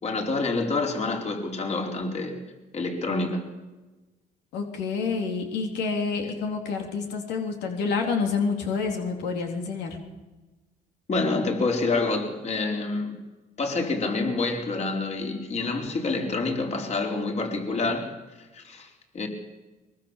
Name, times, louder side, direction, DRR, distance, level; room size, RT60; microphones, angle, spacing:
voice 1, 0.0-2.3 2.7-3.4 11.1-13.2 13.6-18.1 18.5-19.3, left 3 dB, 40° left, 2 dB, 4.7 m, -27 dB
voice 2, 4.5-10.0, left 5 dB, 85° left, 3 dB, 3.7 m, -28 dB
23.0 x 22.5 x 7.5 m, 1.1 s
cardioid pair, 110°, 17 cm